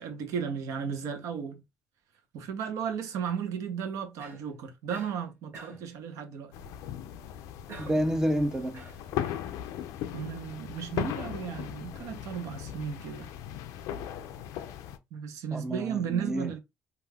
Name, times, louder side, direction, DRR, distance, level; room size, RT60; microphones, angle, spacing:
voice 1, 0.0-1.6 2.3-6.5 10.1-13.3 15.1-16.6, right 7 dB, 75° right, 0.6 m, -34 dB
Cough, 4.2-4.5 4.9-5.2 5.5-5.9 7.7-8.1 8.7-9.5, right 3 dB, 40° right, 0.9 m, -46 dB
sound 1, 6.5-15.0, left 11 dB, 85° left, 0.3 m, -38 dB
voice 2, 7.8-8.8 15.5-16.5, equal, 10° right, 0.3 m, -29 dB
2.3 x 2.3 x 3.3 m
cardioid pair, 110°, 6 cm